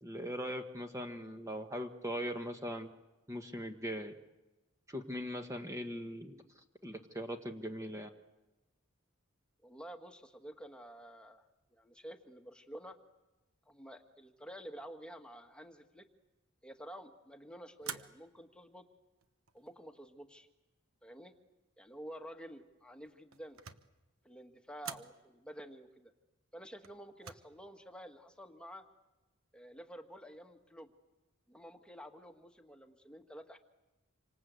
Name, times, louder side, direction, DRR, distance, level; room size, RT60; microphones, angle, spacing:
voice 1, 0.0-2.9 3.3-4.1 4.9-6.4 6.8-8.1, equal, 15° right, 4 dB, 1.4 m, -40 dB
voice 2, 9.6-11.4 11.7-13.0 13.7-16.0 16.6-18.8 19.5-20.5 21.0-21.3 21.8-23.6 24.2-26.1 26.5-28.8 29.5-30.9 31.5-33.6, equal, 5° left, 4 dB, 1.5 m, -50 dB
sound 1, 17.8-18.5 19.2-19.8 23.0-24.0 24.8-25.2 26.8-27.3, right 8 dB, 75° right, 1.2 m, -46 dB
27.5 x 25.5 x 8.2 m, 1.1 s
head